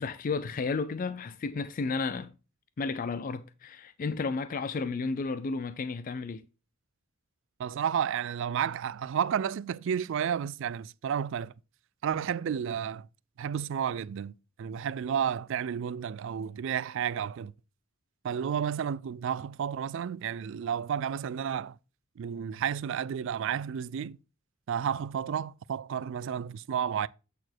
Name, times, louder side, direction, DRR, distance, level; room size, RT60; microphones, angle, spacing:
voice 1, 0.0-2.3 2.8-6.4, left 4 dB, 40° left, 0.4 m, -32 dB
voice 2, 7.6-11.5 12.0-13.1 13.4-14.3 14.6-17.5 18.2-21.8 22.2-24.2 24.7-27.1, right 8 dB, 60° right, 0.3 m, -31 dB
8.2 x 4.4 x 4.3 m
head